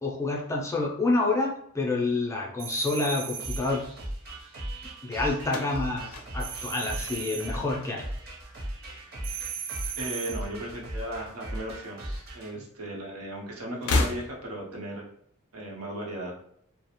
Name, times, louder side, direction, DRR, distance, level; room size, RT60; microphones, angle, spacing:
voice 1, 0.0-3.8 5.0-8.0, left 2 dB, 15° left, -2 dB, 0.4 m, -28 dB
sound 1, 2.6-3.8 6.4-7.6 9.2-10.5, right 8 dB, 65° right, 0.3 m, -37 dB
sound 2, 3.4-12.5, right 1 dB, 45° right, 0.7 m, -38 dB
sound 3, 5.4-7.8 8.1-8.7 9.7-10.7 11.0-11.1 12.2-12.3 13.7-14.7, left 3 dB, 80° left, 0.4 m, -32 dB
voice 2, 9.9-12.0 12.3-15.1 15.5-16.3, right 1 dB, 80° right, -1 dB, 0.7 m, -36 dB
2.4 x 2.0 x 2.9 m, 0.67 s
head